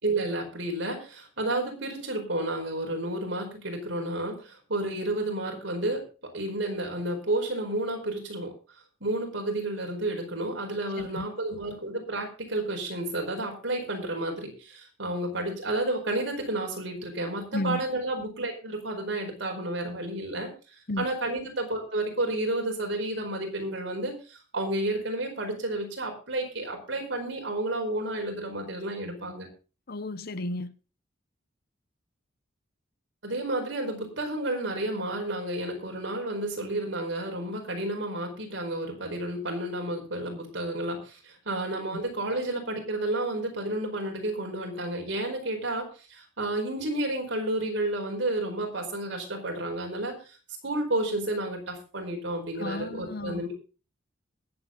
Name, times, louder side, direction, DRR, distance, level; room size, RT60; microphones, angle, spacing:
voice 1, 0.0-6.0 6.3-8.5 9.0-20.5 21.0-29.5 33.2-50.1 50.6-53.5, right 1 dB, 65° right, 4.8 m, -31 dB
voice 2, 11.0-11.3 17.5-17.8 20.9-21.1 29.9-30.7 52.6-53.5, left 2 dB, 50° left, 0.8 m, -33 dB
21.5 x 7.8 x 3.9 m
head